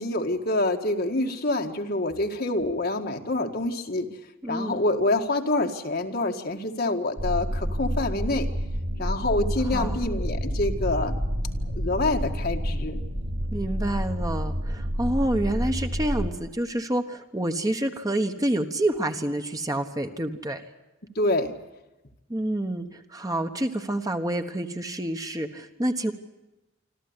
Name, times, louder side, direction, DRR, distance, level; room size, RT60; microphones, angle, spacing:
voice 1, 0.0-4.1 4.5-8.5 9.0-11.2 11.7-13.0 15.7-15.8 21.2-21.5, left 2 dB, 50° left, 4 dB, 1.8 m, -26 dB
voice 2, 4.4-4.8 9.7-10.0 13.5-20.6 22.3-26.1, right 1 dB, 20° right, 6 dB, 1.2 m, -28 dB
sound 1, 7.2-16.3, equal, 75° right, 4.4 m, -29 dB
26.0 x 14.0 x 9.7 m, 1.0 s
head